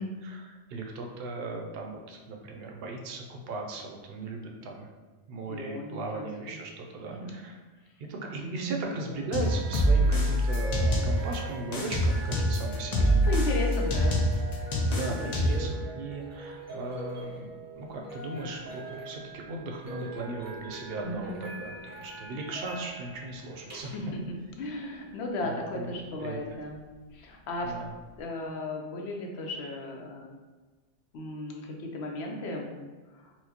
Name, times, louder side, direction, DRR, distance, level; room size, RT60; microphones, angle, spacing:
voice 1, 0.2-4.9 5.3-7.5 8.1-13.2 14.9-24.0 25.4-25.9 26.2-26.4 27.6-27.9, right 2 dB, 65° right, 1 dB, 0.7 m, -37 dB
voice 2, 5.5-6.6 7.1-7.3 8.4-8.7 13.2-14.2 14.9-15.7 21.0-21.4 23.7-24.2 24.6-26.8 27.1-27.8 28.2-30.3 31.1-32.7 33.1-33.3, left 2 dB, 70° left, 1 dB, 0.8 m, -35 dB
sound 1, 9.1-28.2, right 3 dB, 20° right, 0.4 m, -43 dB
sound 2, 9.3-11.4 11.7-15.7, equal, 50° left, 0.5 m, -25 dB
4.4 x 2.0 x 2.7 m, 1.3 s
omnidirectional pair, 1.2 m